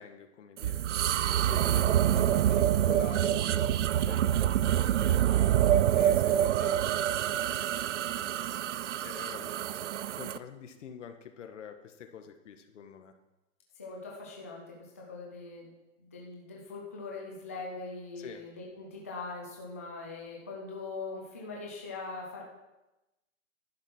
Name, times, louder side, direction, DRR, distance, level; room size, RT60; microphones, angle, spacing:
voice 1, 0.0-8.7 9.0-13.1 18.2-18.4, left 7 dB, 70° left, 7 dB, 1.7 m, -48 dB
sound 1, 0.6-10.4, right 11 dB, 65° right, 0.6 m, -26 dB
voice 2, 13.8-15.7 16.0-22.4, left 3 dB, 10° left, -2 dB, 0.4 m, -41 dB
11.0 x 9.1 x 6.1 m, 1.0 s
hypercardioid pair, 180°, 38 cm